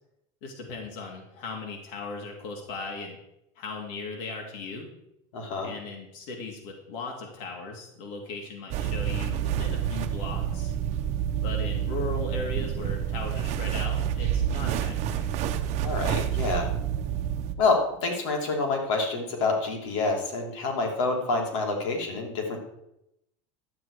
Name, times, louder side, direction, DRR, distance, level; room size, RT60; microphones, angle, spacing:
voice 1, 0.4-3.2 3.6-4.9 5.6-10.7 11.4-15.3, left 3 dB, 70° left, 1 dB, 2.5 m, -37 dB
voice 2, 5.3-5.7 15.8-16.7 17.6-22.6, left 3 dB, 85° left, 2 dB, 2.7 m, -27 dB
sound 1, 8.7-17.5, right 9 dB, 45° right, 0.9 m, -28 dB
12.0 x 8.5 x 4.9 m, 0.83 s
supercardioid pair, 145°, 16 cm